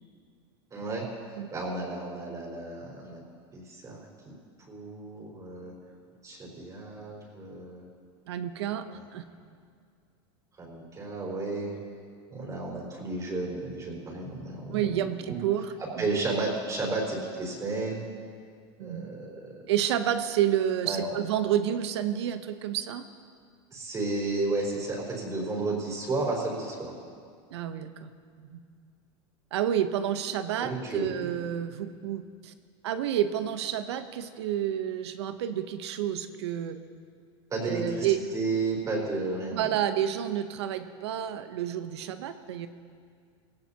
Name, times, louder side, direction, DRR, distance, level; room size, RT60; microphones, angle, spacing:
voice 1, 0.7-1.1 1.5-3.2 3.5-5.7 6.2-7.8 8.9-9.1 10.6-11.7 12.3-15.4 15.8-18.0 18.8-19.6 20.8-21.1 23.7-26.9 30.6-31.3 37.5-38.1 38.3-39.7, right 3 dB, 25° right, -2 dB, 4.6 m, -33 dB
voice 2, 8.3-8.8 9.1-9.2 14.7-16.0 18.8-19.1 19.7-23.0 27.5-28.1 28.4-28.6 29.5-32.5 32.8-36.8 37.7-38.2 39.5-42.7, right 10 dB, 85° right, 9 dB, 0.9 m, -29 dB
18.5 x 16.5 x 2.9 m, 2.1 s
supercardioid pair, 120°, 14 cm